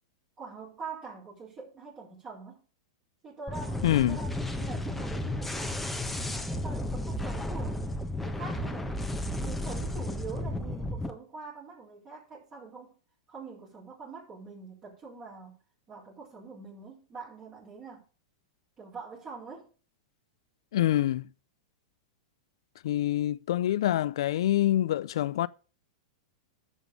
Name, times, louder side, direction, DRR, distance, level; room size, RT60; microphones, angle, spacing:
voice 1, 0.4-2.7 3.2-5.8 6.3-7.8 8.2-9.1 9.4-13.0 13.3-15.6 15.9-18.0 18.8-19.7, right 5 dB, 30° right, 5.0 m, -44 dB
sound 1, 3.5-11.1, left 1 dB, 5° left, 1.1 m, -33 dB
voice 2, 3.8-4.2 20.7-21.3 22.8-25.5, left 13 dB, 75° left, 0.5 m, -26 dB
9.8 x 7.2 x 6.9 m
hypercardioid pair, 120°, 3 cm